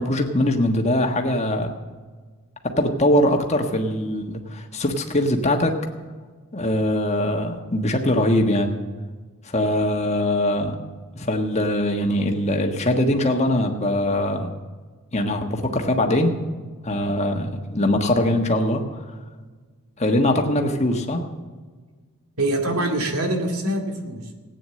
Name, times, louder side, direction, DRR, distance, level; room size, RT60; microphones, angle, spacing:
voice 1, 0.0-1.7 2.6-5.7 6.5-8.7 9.4-10.8 11.1-14.5 15.1-16.4 16.8-19.0 20.0-21.2, left 1 dB, 30° left, 3 dB, 1.4 m, -22 dB
voice 2, 22.4-24.4, right 1 dB, 80° right, 3 dB, 2.3 m, -24 dB
16.0 x 9.2 x 7.6 m, 1.4 s
head